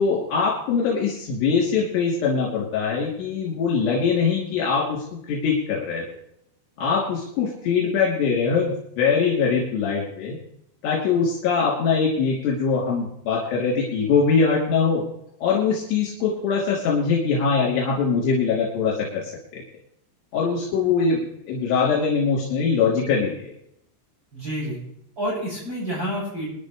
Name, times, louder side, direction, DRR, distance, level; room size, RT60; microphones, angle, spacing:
voice 1, 0.0-6.0 6.8-10.4 10.8-15.1 15.4-19.6 20.3-23.5, left 5 dB, 75° left, -4 dB, 5.2 m, -22 dB
voice 2, 24.3-24.8 25.2-26.5, equal, 25° right, -9 dB, 8.1 m, -28 dB
25.0 x 11.0 x 3.3 m, 0.74 s
omnidirectional pair, 5.0 m